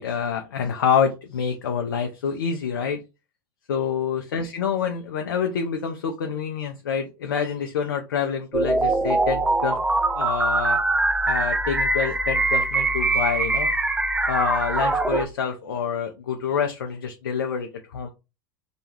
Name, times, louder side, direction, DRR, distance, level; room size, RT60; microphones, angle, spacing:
voice 1, 0.0-3.0 3.7-9.8 10.1-10.8 11.3-13.7 14.3-18.1, left 7 dB, 80° left, 4 dB, 0.4 m, -27 dB
sound 1, 8.5-15.3, right 2 dB, 5° right, 0.3 m, -23 dB
2.3 x 2.2 x 3.0 m, 0.27 s
hypercardioid pair, 85°, 11 cm